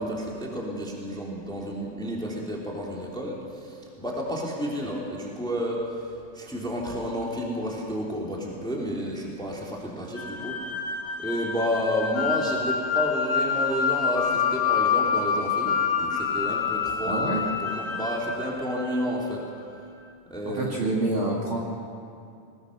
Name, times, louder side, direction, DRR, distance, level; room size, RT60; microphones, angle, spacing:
voice 1, 0.0-10.5 11.2-19.4 20.3-20.9, equal, ahead, -2 dB, 2.7 m, -31 dB
sound 1, 10.2-19.3, left 6 dB, 55° left, 2.1 m, -27 dB
voice 2, 17.0-17.4 20.4-21.6, right 2 dB, 40° right, -3 dB, 2.7 m, -27 dB
22.0 x 20.0 x 6.6 m, 2.5 s
omnidirectional pair, 3.8 m